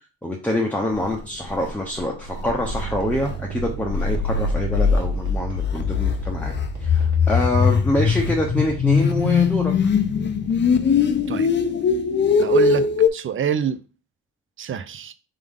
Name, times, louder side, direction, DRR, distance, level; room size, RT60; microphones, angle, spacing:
voice 1, 0.2-6.5 6.8-9.7, left 1 dB, 5° left, 0.8 m, -25 dB
sound 1, 1.1-1.2 1.5-1.7 1.9-2.0 2.3-13.1, left 5 dB, 35° left, 0.6 m, -21 dB
sound 2, 2.6-11.4, right 10 dB, 70° right, 1.3 m, -36 dB
voice 2, 12.4-13.8 14.6-15.1, right 8 dB, 45° right, 0.5 m, -26 dB
3.6 x 3.6 x 3.6 m
cardioid pair, 90°, 30 cm